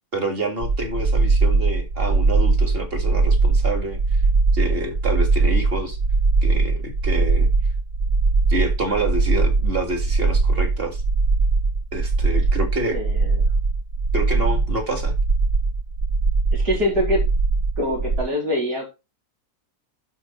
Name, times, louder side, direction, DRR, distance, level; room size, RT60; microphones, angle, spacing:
voice 1, 0.1-4.0 4.5-6.0 6.4-7.5 8.5-11.0 11.9-13.0 14.1-15.1, right 2 dB, 35° right, 5 dB, 2.2 m, -27 dB
sound 1, 0.6-18.2, right 3 dB, 65° right, 4.4 m, -20 dB
voice 2, 12.9-13.4 16.5-17.2 17.8-18.8, left 1 dB, 85° right, -2 dB, 4.4 m, -24 dB
11.5 x 4.4 x 4.3 m, 0.26 s
omnidirectional pair, 1.7 m